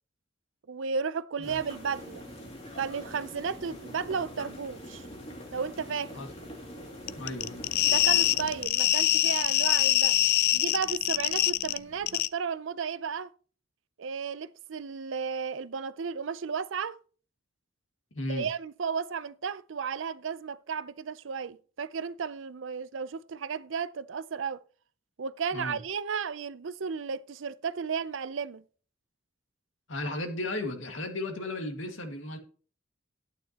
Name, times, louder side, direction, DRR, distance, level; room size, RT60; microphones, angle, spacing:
voice 1, 0.7-2.2 2.8-5.1 5.5-6.1 7.9-10.2 10.5-13.3 14.0-17.0 18.3-24.6 25.2-28.6, right 6 dB, 75° right, 0.5 m, -34 dB
sound 1, 1.4-8.7, equal, 30° left, 2.5 m, -44 dB
sound 2, 7.1-11.8 12.1-12.3, left 14 dB, 55° left, 0.4 m, -24 dB
voice 2, 7.2-7.6 18.1-18.5 25.5-25.8 29.9-32.4, left 2 dB, 80° left, 2.0 m, -34 dB
12.0 x 9.1 x 2.9 m
head